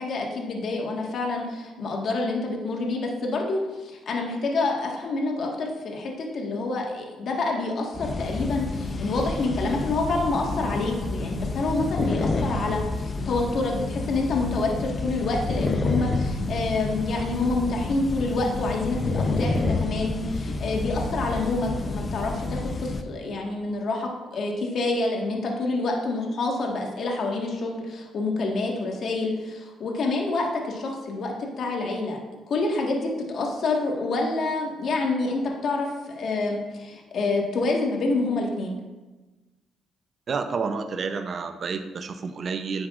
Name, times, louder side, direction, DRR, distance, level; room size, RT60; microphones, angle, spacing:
voice 1, 0.0-32.2 32.5-38.8, left 3 dB, 60° left, 0 dB, 1.5 m, -27 dB
sound 1, 7.9-23.0, left 3 dB, 35° left, 0.6 m, -29 dB
voice 2, 40.3-42.9, right 5 dB, 50° right, 8 dB, 0.6 m, -30 dB
10.0 x 7.8 x 2.4 m, 1.1 s
cardioid pair, 90°, 0 cm